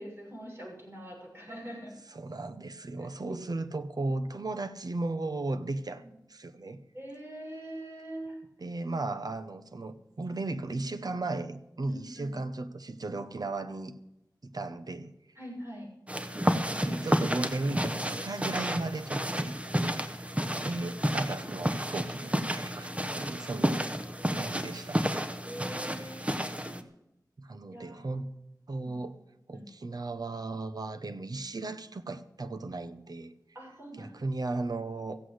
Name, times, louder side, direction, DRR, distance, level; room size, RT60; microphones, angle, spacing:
voice 1, 0.0-1.9 3.0-3.4 4.0-4.1 6.1-6.2 6.9-8.4 11.9-12.4 15.3-15.9 20.4-20.8 22.7-23.3 25.4-26.7 27.7-28.2 29.5-29.7 33.5-34.2, right 1 dB, 35° right, 6.5 m, -44 dB
voice 2, 2.1-6.0 6.3-6.8 8.6-13.9 14.4-15.1 16.8-20.2 20.6-23.8 24.3-25.0 27.4-28.3 28.7-29.1 29.5-33.3 34.0-35.2, right 2 dB, 60° right, 1.0 m, -36 dB
sound 1, 16.1-26.8, equal, 15° right, 1.2 m, -31 dB
15.0 x 8.4 x 7.9 m
wide cardioid pair, 65°, 7 cm